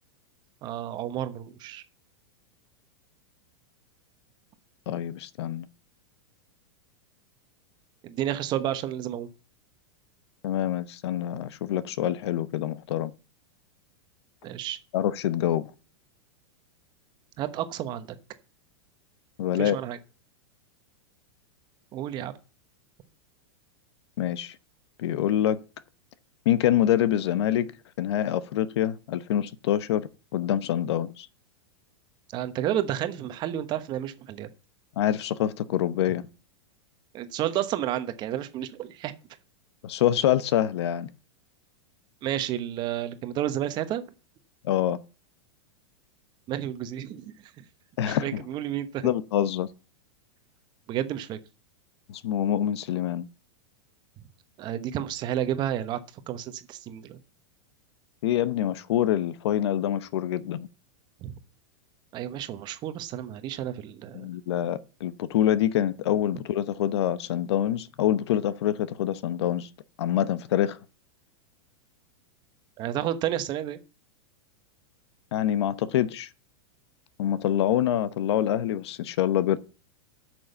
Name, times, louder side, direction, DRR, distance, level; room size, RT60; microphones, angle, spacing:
voice 1, 0.6-1.8 8.0-9.3 14.4-14.8 17.4-18.2 19.6-20.0 21.9-22.3 32.3-34.5 37.1-39.1 42.2-44.0 46.5-47.5 48.1-49.1 50.9-51.4 54.6-56.0 56.3-57.2 61.2-61.3 62.1-64.3 72.8-73.8, right 11 dB, 30° right, 1.1 m, -31 dB
voice 2, 4.9-5.7 10.4-13.1 14.9-15.7 19.4-19.8 24.2-24.6 25.0-25.6 26.4-27.7 28.0-31.3 35.0-36.3 39.8-41.1 44.6-45.0 48.0-48.4 49.0-49.7 52.1-53.3 58.2-60.7 64.1-69.7 70.0-70.8 75.3-76.3 77.2-79.6, left 11 dB, 70° left, 0.9 m, -26 dB
9.5 x 6.3 x 6.9 m
supercardioid pair, 150°, 14 cm